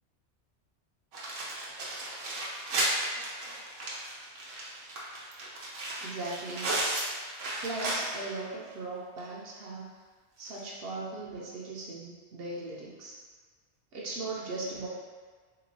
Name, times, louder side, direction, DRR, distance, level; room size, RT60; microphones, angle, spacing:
sound 1, 1.1-8.4 8.7-8.8 9.2-9.3 10.5-10.6, right 1 dB, 85° right, 1.1 m, -34 dB
voice 1, 6.0-6.8 7.6-9.9 10.4-13.2 13.9-14.9, right 2 dB, 65° right, -4 dB, 0.7 m, -38 dB
3.4 x 2.9 x 2.6 m, 1.5 s
omnidirectional pair, 1.2 m